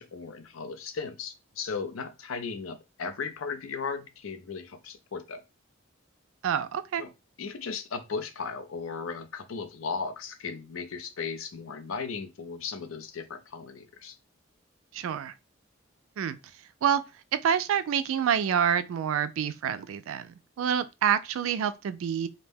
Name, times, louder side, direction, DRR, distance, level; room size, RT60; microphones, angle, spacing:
voice 1, 0.0-5.4 7.0-7.1 7.4-14.2, left 5 dB, 85° left, 0.5 m, -36 dB
voice 2, 6.4-7.0 14.9-15.3 16.2-16.4 16.8-17.0 17.4-22.3, right 8 dB, 85° right, 0.3 m, -27 dB
2.6 x 2.1 x 3.4 m
head